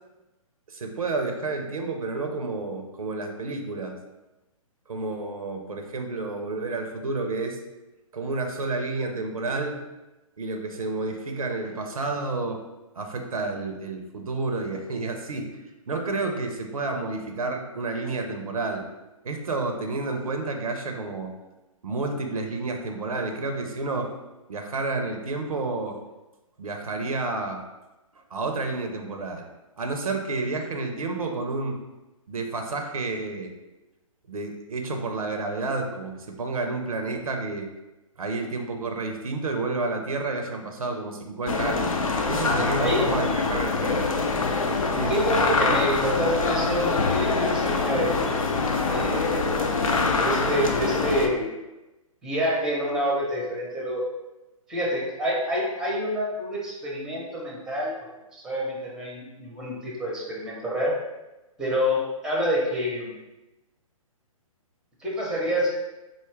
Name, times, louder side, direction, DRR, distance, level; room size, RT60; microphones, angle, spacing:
voice 1, 0.7-4.0 4.9-7.6 8.1-9.8 10.4-12.6 13.0-15.6 15.9-18.8 19.2-21.3 21.8-24.1 24.5-26.0 26.6-27.6 28.3-29.5 29.8-31.8 32.3-33.5 34.3-37.7 38.2-42.0 42.3-44.1 44.9-45.1, right 3 dB, 75° right, 4 dB, 0.6 m, -30 dB
sound 1, 41.5-51.3, left 3 dB, 70° left, 0.5 m, -24 dB
voice 2, 42.8-43.1 45.1-48.3 48.9-49.6 50.2-51.4 52.2-54.0 54.7-57.9 58.3-60.9 61.6-63.1 65.0-65.7, equal, 5° right, -4 dB, 0.7 m, -27 dB
4.0 x 2.4 x 3.2 m, 1.0 s
figure-of-eight pair, 130°, 18 cm